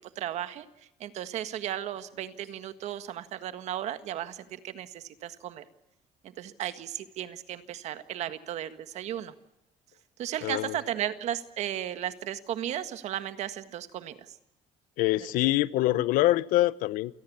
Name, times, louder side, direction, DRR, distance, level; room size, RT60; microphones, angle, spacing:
voice 1, 0.2-0.7 1.0-5.6 6.2-9.3 10.2-14.3 15.4-15.5, right 11 dB, 55° right, 11 dB, 1.7 m, -35 dB
voice 2, 10.4-10.8 15.0-17.2, left 16 dB, 85° left, 18 dB, 0.8 m, -25 dB
28.5 x 18.5 x 8.5 m, 0.92 s
cardioid pair, 175°, 14 cm